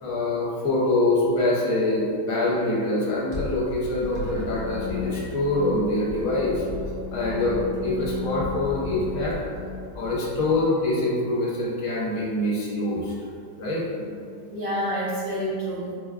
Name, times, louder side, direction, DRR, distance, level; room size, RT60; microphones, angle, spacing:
voice 1, 0.0-6.6 7.1-9.4 9.9-13.1 13.6-13.9, left 2 dB, 65° left, -5 dB, 1.0 m, -25 dB
sound 1, 3.3-10.6, left 5 dB, 10° left, 0.6 m, -34 dB
voice 2, 14.0-15.9, equal, 80° right, -8 dB, 0.5 m, -29 dB
4.5 x 2.2 x 2.3 m, 2.3 s
omnidirectional pair, 1.7 m